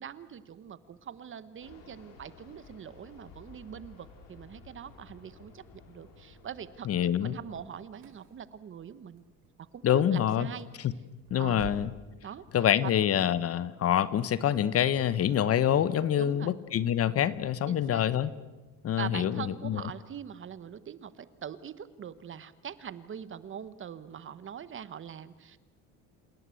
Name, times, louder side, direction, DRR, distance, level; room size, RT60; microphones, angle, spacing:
voice 1, 0.0-6.9 7.2-9.2 9.6-10.7 11.4-11.7 12.2-12.5 12.8-12.9 16.2-16.5 17.7-18.1 19.0-25.6, right 8 dB, 35° right, 15 dB, 1.2 m, -43 dB
Fixed-wing aircraft airplane, 1.6-7.6, left 4 dB, 85° left, 4.7 m, -54 dB
voice 2, 6.9-7.3 9.8-10.5 11.3-11.9 12.5-18.3 18.8-19.8, left 10 dB, 45° left, 17 dB, 1.1 m, -26 dB
sound 1, 7.3-12.0, right 10 dB, 80° right, 4.2 m, -50 dB
28.0 x 18.0 x 8.4 m, 1.2 s
cardioid pair, 115°, 33 cm